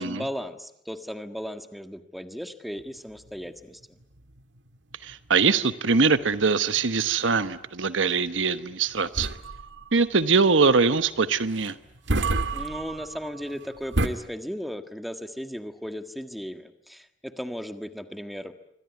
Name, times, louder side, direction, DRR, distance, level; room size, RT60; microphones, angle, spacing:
voice 1, 0.0-3.8 12.5-18.5, equal, ahead, 8 dB, 1.6 m, -36 dB
sound 1, 2.8-14.1, right 2 dB, 70° right, 1.8 m, -33 dB
voice 2, 5.0-9.4 9.9-11.8, right 4 dB, 85° right, 12 dB, 1.1 m, -22 dB
26.5 x 23.5 x 9.4 m, 0.77 s
head